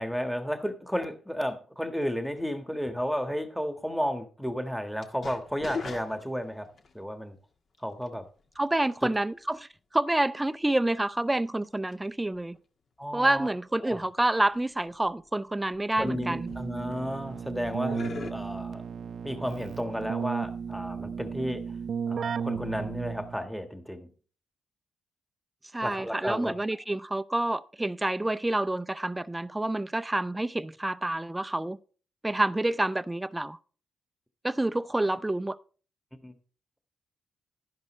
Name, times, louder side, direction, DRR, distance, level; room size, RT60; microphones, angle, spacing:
voice 1, 0.0-6.7 6.9-7.4 7.8-8.2 9.0-9.1 13.0-13.5 13.8-14.0 16.0-18.8 19.2-21.6 22.1-24.1 25.8-26.5 36.2-36.3, equal, 5° left, 1.5 m, -33 dB
sound 1, 5.0-6.9 8.0-8.3 8.8-8.9 10.9-11.0 11.9-12.0 12.4-12.6 13.5-13.6 14.2-14.3 14.5-15.1 15.6-16.1 16.5-17.3 17.6-18.3, left 4 dB, 55° left, 1.6 m, -40 dB
voice 2, 8.6-9.7 9.9-12.6 13.1-16.5 25.7-31.8 32.2-33.6 34.4-35.6, right 1 dB, 15° right, 0.5 m, -28 dB
Keyboard (musical), 16.0-23.5, right 6 dB, 60° right, 0.5 m, -35 dB
11.5 x 10.5 x 3.2 m
supercardioid pair, 60°, 0 cm